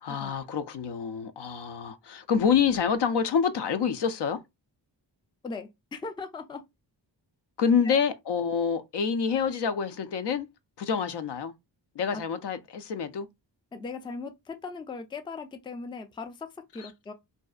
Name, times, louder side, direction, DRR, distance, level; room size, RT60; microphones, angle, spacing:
voice 1, 0.0-4.4 7.6-10.5 10.8-11.5 12.0-13.3, left 6 dB, 65° left, 0.5 m, -27 dB
voice 2, 5.4-6.6 7.8-8.0 12.1-12.2 13.7-17.1, left 4 dB, 10° left, 0.3 m, -39 dB
2.6 x 2.0 x 2.3 m
cardioid pair, 75°, 45 cm